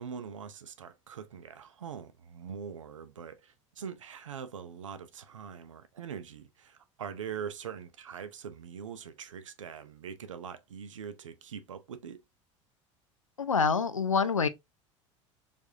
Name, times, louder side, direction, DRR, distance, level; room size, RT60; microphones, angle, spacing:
voice 1, 0.0-12.2, right 7 dB, 80° right, 0.6 m, -43 dB
voice 2, 13.4-14.5, left 5 dB, 90° left, 0.4 m, -26 dB
4.6 x 2.6 x 2.7 m
figure-of-eight pair, 70°, 16 cm